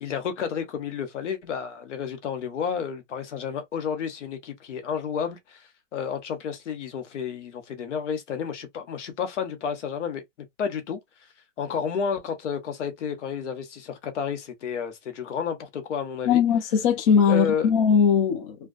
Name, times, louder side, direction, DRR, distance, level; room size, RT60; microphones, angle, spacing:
voice 1, 0.0-10.2 10.6-11.0 11.6-16.4 17.3-17.7, left 7 dB, 70° left, 0.9 m, -31 dB
voice 2, 16.3-18.6, left 6 dB, 30° left, 0.5 m, -20 dB
2.5 x 2.2 x 2.4 m
hypercardioid pair, 145°, 37 cm